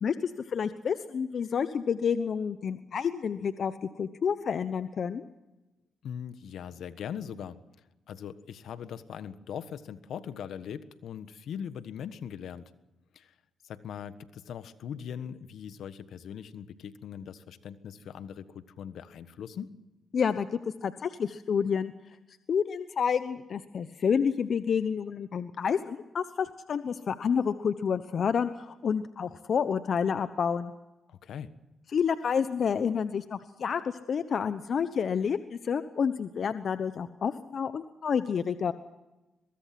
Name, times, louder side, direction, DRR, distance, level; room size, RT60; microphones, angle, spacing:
voice 1, 0.0-5.2 20.1-21.9 22.5-30.7 31.9-38.7, left 6 dB, 60° left, 11 dB, 1.0 m, -29 dB
voice 2, 6.0-7.6 8.1-12.7 13.1-13.3 13.6-19.7 31.1-31.5, left 8 dB, 75° left, 12 dB, 1.4 m, -40 dB
22.5 x 22.0 x 6.0 m, 1.1 s
supercardioid pair, 60°, 0 cm